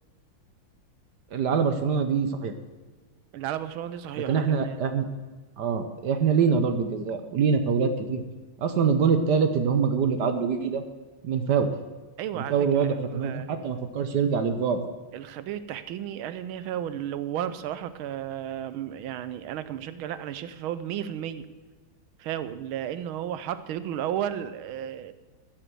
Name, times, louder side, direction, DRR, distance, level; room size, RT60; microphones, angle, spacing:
voice 1, 1.3-2.5 4.3-5.1 5.6-8.2 8.6-10.8 11.2-11.7 12.4-14.8, right 6 dB, 60° right, 8 dB, 1.3 m, -24 dB
voice 2, 3.3-4.8 12.2-13.5 15.1-21.5 22.2-25.1, right 10 dB, 90° right, 13 dB, 1.6 m, -33 dB
13.5 x 6.8 x 7.8 m, 1.3 s
omnidirectional pair, 2.2 m